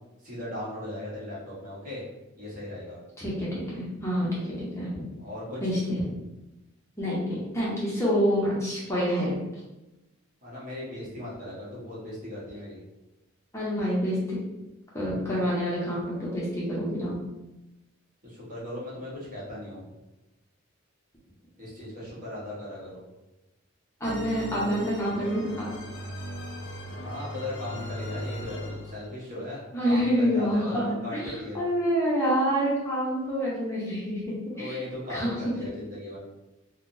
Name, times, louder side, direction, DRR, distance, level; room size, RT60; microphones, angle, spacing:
voice 1, 0.2-2.0 2.4-3.0 5.2-5.7 10.4-12.8 18.2-19.8 21.6-23.0 26.9-31.6 34.6-36.2, left 1 dB, 40° right, -7 dB, 1.1 m, -38 dB
voice 2, 3.2-5.0 5.6-6.1 7.0-9.4 13.5-14.4 14.9-17.2 24.0-25.5 29.7-34.8 35.1-35.4, equal, 15° left, -7 dB, 0.7 m, -27 dB
sound 1, 24.0-29.2, left 1 dB, 60° left, 0.4 m, -38 dB
3.5 x 2.1 x 2.6 m, 1.0 s
head